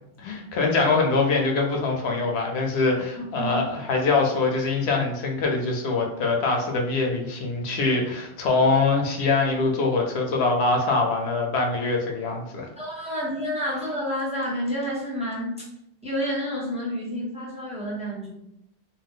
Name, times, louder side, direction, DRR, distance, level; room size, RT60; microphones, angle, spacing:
voice 1, 0.2-12.7, left 3 dB, 85° left, 1 dB, 0.9 m, -23 dB
voice 2, 3.2-3.5 12.8-15.7 16.0-18.3, equal, 5° right, -7 dB, 0.7 m, -29 dB
2.5 x 2.1 x 3.5 m, 0.82 s
omnidirectional pair, 1.1 m